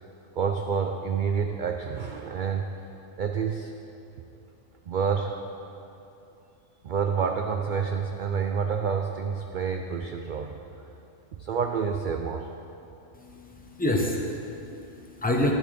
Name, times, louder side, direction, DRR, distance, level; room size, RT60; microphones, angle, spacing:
voice 1, 0.4-2.7 3.2-3.8 4.9-5.4 6.8-10.6 11.3-12.5, right 6 dB, 70° right, 4 dB, 0.4 m, -28 dB
voice 2, 13.1-15.5, left 1 dB, 10° left, 0 dB, 0.7 m, -28 dB
11.0 x 9.7 x 3.4 m, 2.8 s
omnidirectional pair, 1.3 m